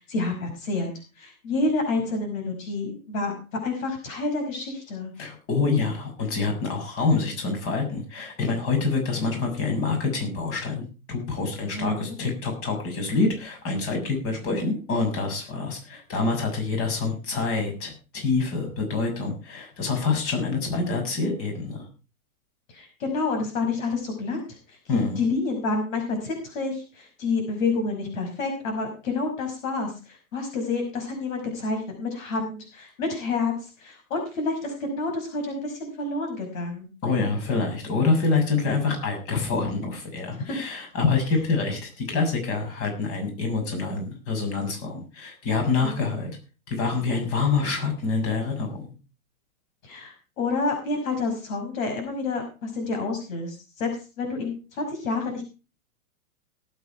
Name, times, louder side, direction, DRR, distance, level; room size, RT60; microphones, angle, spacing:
voice 1, 0.1-3.3 3.6-5.1 11.7-12.2 22.7-36.9 40.3-40.6 45.8-46.2 49.8-53.9 54.2-55.4, left 3 dB, 65° left, 4 dB, 5.8 m, -29 dB
voice 2, 5.2-21.9 24.9-25.2 37.0-46.3 46.7-48.9, left 4 dB, 30° left, 4 dB, 6.8 m, -26 dB
18.5 x 8.6 x 4.5 m, 0.33 s
hypercardioid pair, 140°, 43 cm